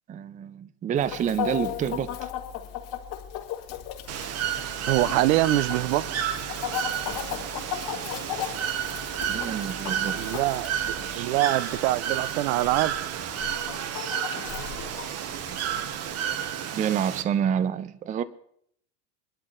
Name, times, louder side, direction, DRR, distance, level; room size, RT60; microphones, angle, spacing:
voice 1, 0.1-2.3 9.3-10.3 11.0-11.3 16.7-18.2, right 8 dB, 15° right, 0.5 m, -28 dB
Chicken rooster, 1.0-16.5, left 10 dB, 55° left, 3.2 m, -37 dB
Bird / Water, 4.1-17.2, right 9 dB, 35° right, 0.9 m, -31 dB
voice 2, 4.9-6.0 10.2-10.7 11.2-12.9, right 16 dB, 60° right, 0.6 m, -24 dB
26.5 x 12.5 x 2.5 m
hypercardioid pair, 105°, 46 cm